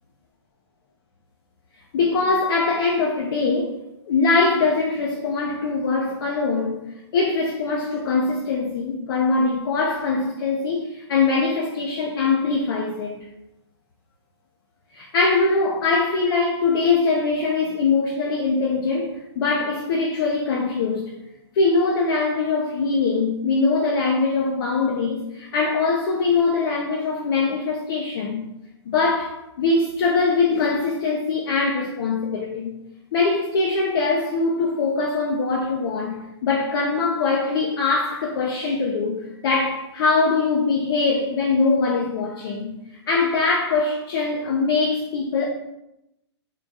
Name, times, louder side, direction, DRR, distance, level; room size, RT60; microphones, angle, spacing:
voice 1, 1.9-3.8 4.1-6.8 7.1-13.2 14.9-21.1 21.5-28.4 28.9-32.7 33.1-42.7 43.1-45.5, left 4 dB, 50° left, 0.6 m, -22 dB
3.7 x 2.3 x 4.0 m
hypercardioid pair, 150°, 15 cm